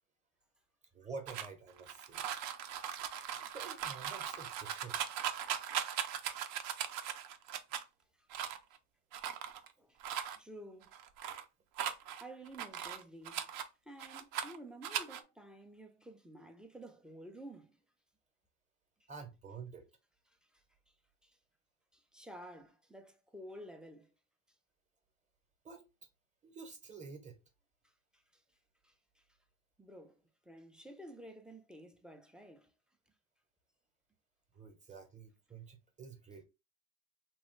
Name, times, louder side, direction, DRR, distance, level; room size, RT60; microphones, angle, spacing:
voice 1, 0.9-2.2 3.4-5.0 19.1-19.9 25.6-25.8 26.4-27.4 34.5-36.4, right 4 dB, 20° right, 0.7 m, -49 dB
sound 1, 1.3-7.8 8.3-8.8 9.1-9.7 10.0-10.4 10.8-11.4 11.8-13.7 14.0-14.6 14.8-15.2, right 9 dB, 70° right, 0.6 m, -39 dB
voice 2, 10.4-10.9 12.2-17.8 20.5-20.9 21.2-21.4 21.9-24.1 27.8-28.4 28.8-29.2 29.8-32.7, right 1 dB, ahead, 0.3 m, -52 dB
3.0 x 2.3 x 3.0 m
supercardioid pair, 115°, 36 cm